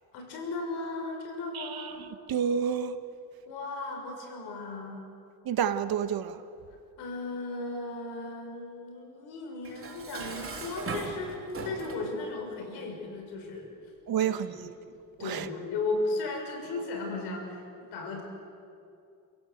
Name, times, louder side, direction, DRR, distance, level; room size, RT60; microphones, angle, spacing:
voice 1, 0.1-2.0 3.5-5.1 7.0-13.7 14.2-14.6 15.2-18.2, left 3 dB, 85° left, 6.5 m, -36 dB
voice 2, 1.5-3.0 5.4-6.4 14.1-14.7 15.2-15.5, right 8 dB, 65° right, 1.4 m, -30 dB
Dishes pots and pans, 9.6-12.1, right 4 dB, 35° right, 3.8 m, -39 dB
29.5 x 16.5 x 8.0 m
cardioid pair, 115°, 39 cm